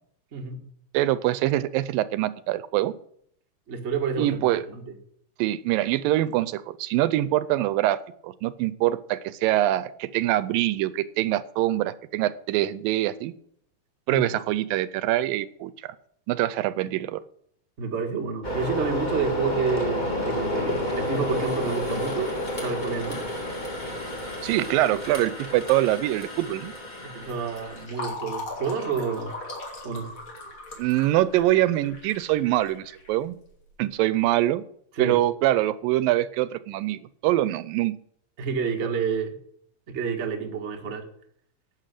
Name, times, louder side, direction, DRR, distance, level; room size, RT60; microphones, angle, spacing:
voice 1, 0.3-0.6 3.7-4.9 14.1-14.3 17.8-23.2 27.0-29.3 29.8-30.1 34.9-35.2 38.4-39.3 39.9-41.1, right 5 dB, 45° right, 3 dB, 0.8 m, -29 dB
voice 2, 0.9-2.9 4.2-4.7 5.4-13.3 14.1-16.0 16.3-17.2 24.4-26.7 30.8-33.4 33.8-34.6 35.0-37.9, right 15 dB, 80° right, 16 dB, 2.2 m, -24 dB
sound 1, 18.4-27.9, left 1 dB, 15° left, 1.6 m, -30 dB
Fill (with liquid), 27.2-33.6, left 2 dB, 40° left, 3.3 m, -39 dB
11.5 x 8.0 x 6.6 m, 0.66 s
omnidirectional pair, 4.1 m